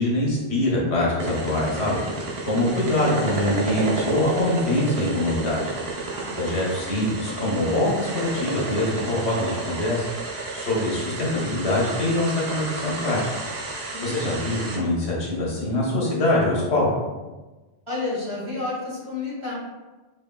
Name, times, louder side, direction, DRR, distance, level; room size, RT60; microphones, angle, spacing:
voice 1, 0.0-5.6 6.4-13.2 14.0-16.9, left 1 dB, 85° left, -4 dB, 1.3 m, -24 dB
sound 1, 1.2-14.8, right 3 dB, 70° right, 1.0 m, -31 dB
voice 2, 17.9-19.5, left 3 dB, 30° right, -7 dB, 1.2 m, -31 dB
4.6 x 3.4 x 2.2 m, 1.2 s
omnidirectional pair, 1.1 m